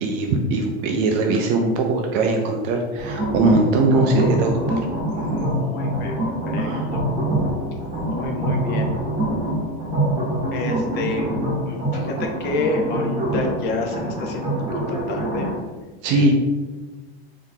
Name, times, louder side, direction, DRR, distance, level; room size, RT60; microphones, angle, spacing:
voice 1, 0.0-4.8 5.2-5.4 6.6-6.8 16.0-16.3, right 2 dB, 40° right, 2 dB, 0.4 m, -20 dB
sound 1, 3.0-15.5, right 1 dB, 15° right, 1.1 m, -25 dB
voice 2, 5.5-6.2 6.5-7.0 8.1-8.9 10.5-11.3 11.7-15.5 16.1-16.3, left 2 dB, 35° left, 2 dB, 0.6 m, -29 dB
3.4 x 2.8 x 3.7 m, 1.3 s
supercardioid pair, 145°, 31 cm